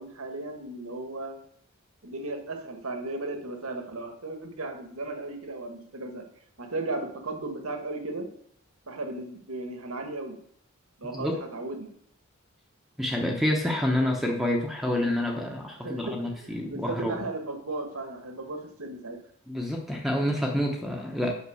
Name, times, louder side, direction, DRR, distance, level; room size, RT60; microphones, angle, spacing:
voice 1, 0.0-1.4 2.0-6.2 6.6-8.3 8.9-10.4 11.0-11.9 15.7-19.2, right 2 dB, 75° right, 5 dB, 1.6 m, -35 dB
voice 2, 13.0-17.2 19.5-21.3, left 1 dB, ahead, 0 dB, 0.9 m, -28 dB
8.2 x 5.9 x 6.4 m, 0.66 s
head